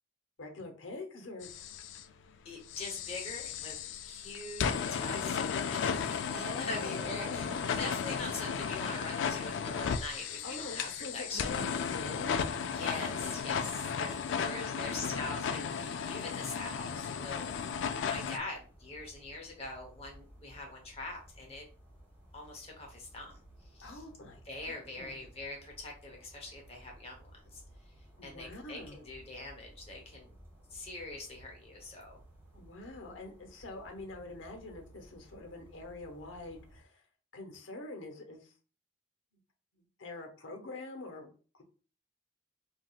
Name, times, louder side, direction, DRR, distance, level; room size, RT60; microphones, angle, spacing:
voice 1, 0.4-1.7 6.3-7.7 10.4-12.5 14.3-14.9 23.8-25.2 28.2-29.0 32.5-37.0 37.3-38.5 39.7-41.3, left 2 dB, 90° left, 3 dB, 0.8 m, -45 dB
sound 1, 1.4-2.0 2.7-18.4, left 6 dB, 75° left, 0.3 m, -35 dB
voice 2, 2.4-7.5 7.8-11.5 12.7-17.5 18.0-21.7 22.3-24.0 24.4-30.3 30.7-32.2, left 2 dB, 30° left, 0 dB, 0.9 m, -43 dB
sound 2, 17.1-36.8, right 1 dB, 15° right, 1.7 m, -57 dB
3.5 x 2.8 x 2.3 m, 0.39 s
head